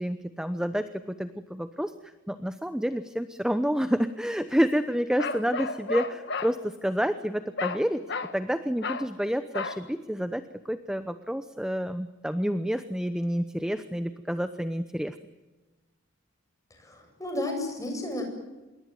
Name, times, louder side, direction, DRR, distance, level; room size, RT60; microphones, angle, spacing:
voice 1, 0.0-1.9 2.3-8.0 8.3-15.1, equal, 5° right, 10 dB, 0.9 m, -29 dB
Bark, 5.2-6.6 7.6-8.4 8.8-9.1 9.5-9.8, left 4 dB, 60° left, 1.6 m, -32 dB
voice 2, 16.8-18.2, left 1 dB, 15° left, 3 dB, 7.7 m, -32 dB
27.0 x 22.5 x 9.4 m, 1.1 s
head